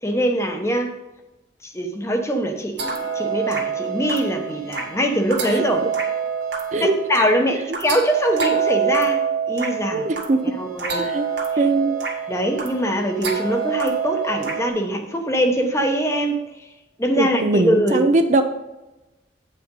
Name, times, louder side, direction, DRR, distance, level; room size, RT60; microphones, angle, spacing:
voice 1, 0.0-0.9 1.6-5.8 6.8-10.0 10.5-11.1 11.5-11.6 12.3-16.4 17.0-18.0, equal, 15° left, 4 dB, 0.9 m, -23 dB
sound 1, 2.8-14.7, right 6 dB, 70° right, 1.8 m, -26 dB
voice 2, 9.9-10.4 11.0-11.3 11.6-12.0 17.2-18.4, right 2 dB, 40° right, 7 dB, 0.5 m, -20 dB
8.8 x 5.3 x 5.4 m, 1.0 s
head